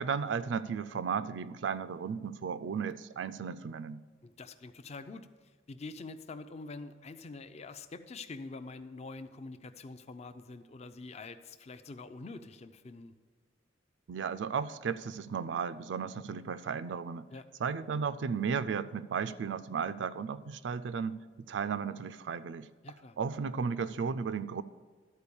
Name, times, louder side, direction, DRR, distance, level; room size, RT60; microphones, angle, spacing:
voice 1, 0.0-4.0 14.1-17.3 17.6-22.7 23.2-24.6, right 6 dB, 70° right, 14 dB, 0.4 m, -34 dB
voice 2, 4.2-5.3 5.7-13.1 17.3-17.4 22.8-23.2, left 3 dB, 35° left, 10 dB, 0.5 m, -45 dB
12.0 x 4.5 x 7.0 m, 1.5 s
head